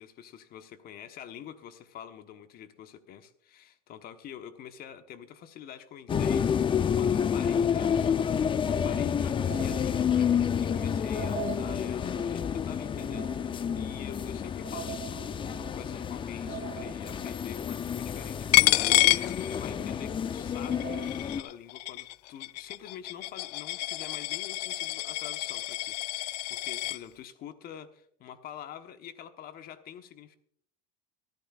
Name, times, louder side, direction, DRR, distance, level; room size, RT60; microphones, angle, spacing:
voice 1, 0.0-8.2 8.7-30.4, left 9 dB, 45° left, 9 dB, 1.1 m, -46 dB
sound 1, 6.1-21.4, left 8 dB, 25° left, 0.5 m, -29 dB
sound 2, 8.6-19.5 19.9-20.0 20.6-21.1, right 15 dB, 45° right, 1.2 m, -45 dB
Coin (dropping), 18.5-20.0 20.4-27.0, left 19 dB, 80° left, 0.4 m, -28 dB
23.0 x 10.5 x 2.4 m, 0.64 s
supercardioid pair, 105°, 21 cm